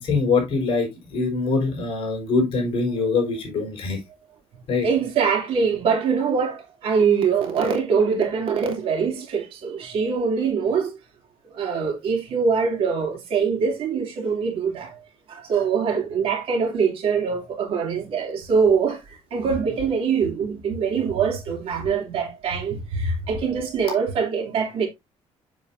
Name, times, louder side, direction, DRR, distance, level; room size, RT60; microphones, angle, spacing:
voice 1, 0.0-4.0 4.7-4.9, left 4 dB, 55° left, 4.4 m, -23 dB
voice 2, 4.8-10.9 11.5-15.0 15.3-24.9, right 6 dB, 60° right, 2.9 m, -23 dB
7.4 x 7.4 x 2.6 m
cardioid pair, 170°, 11 cm